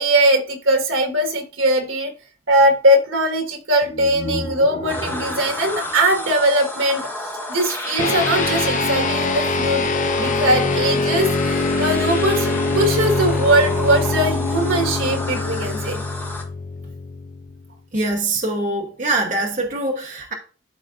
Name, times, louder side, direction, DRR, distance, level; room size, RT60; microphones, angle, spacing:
voice 1, 0.0-2.1 2.5-7.0 7.5-9.8 10.1-16.0, right 1 dB, 80° right, 1.5 m, -20 dB
sound 1, 3.8-7.0, equal, 65° left, 2.1 m, -33 dB
sound 2, 4.9-16.4, left 1 dB, 10° left, 1.0 m, -31 dB
sound 3, 8.0-17.7, left 3 dB, 40° left, 0.4 m, -23 dB
voice 2, 17.9-20.3, right 2 dB, 40° right, 1.0 m, -23 dB
12.0 x 3.9 x 2.5 m
head